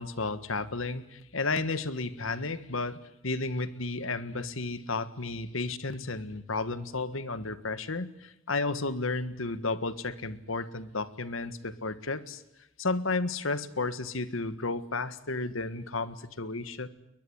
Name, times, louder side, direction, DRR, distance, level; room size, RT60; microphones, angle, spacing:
voice 1, 0.0-12.4 12.8-16.9, left 3 dB, 80° left, 14 dB, 1.6 m, -33 dB
22.0 x 21.0 x 9.8 m, 0.88 s
head